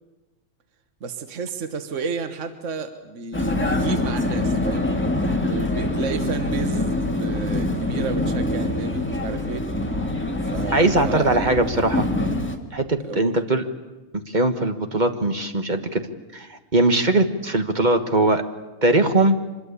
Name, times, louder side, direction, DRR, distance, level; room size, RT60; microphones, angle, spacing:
voice 1, 1.0-4.9 5.4-9.6 10.4-11.5 13.0-13.3, right 5 dB, 55° right, 8 dB, 1.6 m, -31 dB
Vehicle, 3.3-12.6, left 2 dB, 10° left, 1.9 m, -25 dB
voice 2, 10.7-12.1 12.7-13.6 14.1-16.0 16.3-18.4 18.8-19.4, right 2 dB, 30° right, 7 dB, 1.5 m, -20 dB
25.0 x 22.0 x 8.4 m, 1.1 s
omnidirectional pair, 1.5 m